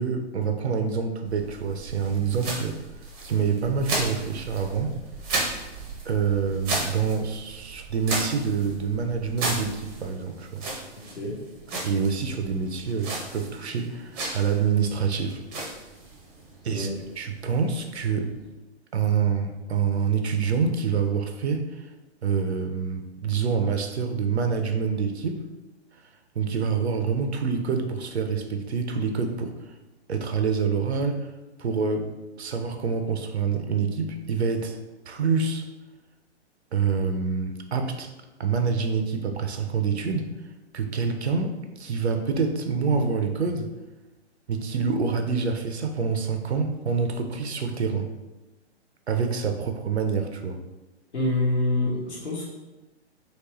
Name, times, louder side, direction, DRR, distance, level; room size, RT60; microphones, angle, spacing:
voice 1, 0.0-2.8 3.2-4.9 6.0-10.7 11.8-15.4 16.6-16.9 17.2-18.3 18.9-21.9 22.2-25.4 26.0-29.7 30.1-31.3 31.6-32.1 32.4-34.8 35.1-35.6 36.7-38.1 38.4-40.3 40.7-43.7 44.5-48.1 49.1-50.6, right 5 dB, 70° right, 5 dB, 0.5 m, -26 dB
sound 1, 1.2-18.5, right 2 dB, 20° right, 0.6 m, -35 dB
voice 2, 10.9-11.4 16.7-16.9 51.1-52.5, left 2 dB, 75° left, -4 dB, 1.1 m, -26 dB
3.1 x 2.9 x 3.0 m, 1.1 s
figure-of-eight pair, 120°, 34 cm